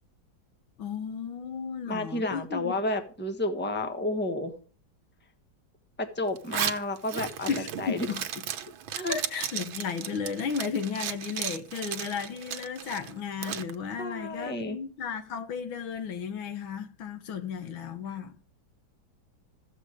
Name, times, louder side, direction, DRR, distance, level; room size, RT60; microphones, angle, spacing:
voice 1, 0.8-2.7 7.5-8.2 8.7-8.8 9.1-18.5, left 6 dB, 90° left, 2.0 m, -34 dB
voice 2, 1.9-4.5 6.0-7.5 7.8-8.1 8.9-9.2 14.0-14.8, left 2 dB, 5° left, 1.0 m, -31 dB
Zipper (clothing), 6.4-13.7, right 9 dB, 80° right, 1.7 m, -35 dB
14.5 x 7.4 x 5.0 m
omnidirectional pair, 2.2 m